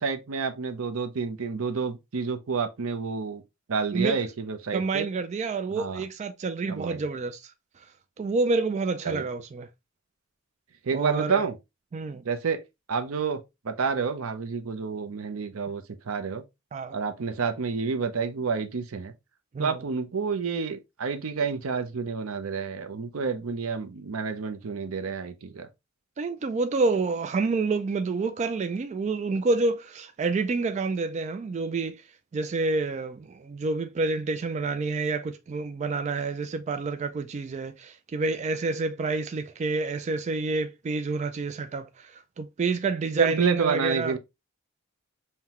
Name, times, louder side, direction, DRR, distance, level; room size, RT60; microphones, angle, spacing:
voice 1, 0.0-3.4 3.7-5.1 5.7-6.0 6.7-7.0 9.0-9.3 10.8-11.5 12.2-12.6 12.9-16.4 16.9-19.1 19.6-25.7 43.2-44.2, right 5 dB, 85° right, 0.6 m, -29 dB
voice 2, 4.7-7.4 8.2-9.7 10.9-11.4 11.9-12.2 16.7-16.9 19.5-19.8 26.2-32.0 32.3-42.1 42.4-44.2, right 3 dB, 35° right, 0.3 m, -28 dB
5.6 x 2.2 x 2.9 m
head